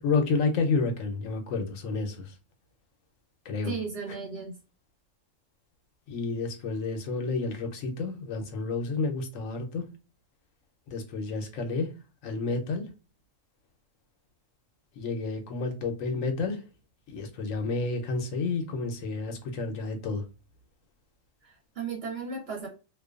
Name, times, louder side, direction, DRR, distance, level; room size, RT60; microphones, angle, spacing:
voice 1, 0.0-2.3 3.5-3.7 6.1-9.8 10.9-11.9 12.2-12.9 15.0-16.6 17.1-20.2, left 3 dB, 85° left, 1.1 m, -30 dB
voice 2, 3.6-4.6 21.4-22.7, right 5 dB, 55° right, 0.9 m, -35 dB
2.5 x 2.2 x 2.3 m
omnidirectional pair, 1.3 m